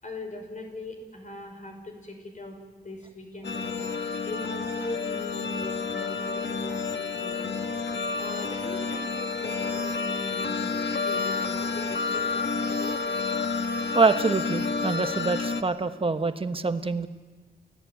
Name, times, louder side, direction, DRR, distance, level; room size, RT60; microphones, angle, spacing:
voice 1, 0.0-2.6 2.8-3.8 4.2-7.6 8.2-13.0, left 2 dB, 45° left, 3 dB, 5.8 m, -40 dB
sound 1, 3.4-15.6, left 4 dB, 70° left, 1.5 m, -30 dB
voice 2, 13.9-17.1, right 4 dB, 30° right, 9 dB, 1.2 m, -25 dB
29.5 x 17.0 x 9.5 m, 1.4 s
wide cardioid pair, 140°, 18 cm